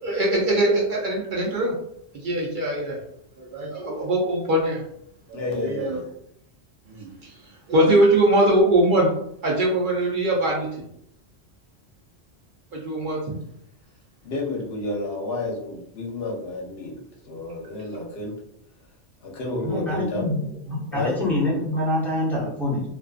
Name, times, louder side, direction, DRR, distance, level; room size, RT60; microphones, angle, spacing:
voice 1, 0.0-1.7 2.1-3.0 3.4-4.8 5.3-6.0 6.9-7.3 7.7-9.1 9.4-10.7 12.7-13.3, right 1 dB, 60° right, -3 dB, 0.6 m, -22 dB
voice 2, 5.3-6.1 14.2-18.3 19.2-20.2 20.9-21.2, left 2 dB, 70° left, -1 dB, 0.8 m, -30 dB
voice 3, 19.6-22.8, left 1 dB, ahead, -6 dB, 0.6 m, -25 dB
2.4 x 2.4 x 2.3 m, 0.74 s
omnidirectional pair, 1.1 m